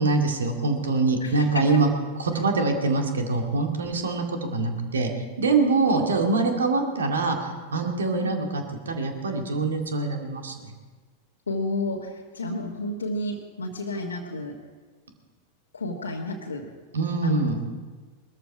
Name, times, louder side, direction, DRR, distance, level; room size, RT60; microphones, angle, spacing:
voice 1, 0.0-1.9 2.2-5.1 5.4-10.7 16.9-17.6, right 3 dB, 70° right, 3 dB, 2.2 m, -24 dB
voice 2, 1.2-1.8 8.2-8.3 11.5-14.6 15.7-16.7 17.2-17.5, left 2 dB, 75° left, -3 dB, 1.5 m, -31 dB
20.5 x 13.5 x 4.8 m, 1.4 s
figure-of-eight pair, 90°, 0 cm